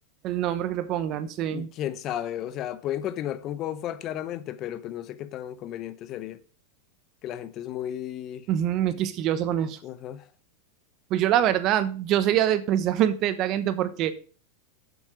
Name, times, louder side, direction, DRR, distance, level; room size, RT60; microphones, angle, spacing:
voice 1, 0.2-1.7 8.5-9.8 11.1-14.1, right 11 dB, 40° right, 1.0 m, -24 dB
voice 2, 1.5-6.4 7.2-8.5 9.8-10.2, left 11 dB, 35° left, 0.7 m, -33 dB
8.0 x 7.3 x 5.0 m
supercardioid pair, 135°, 0 cm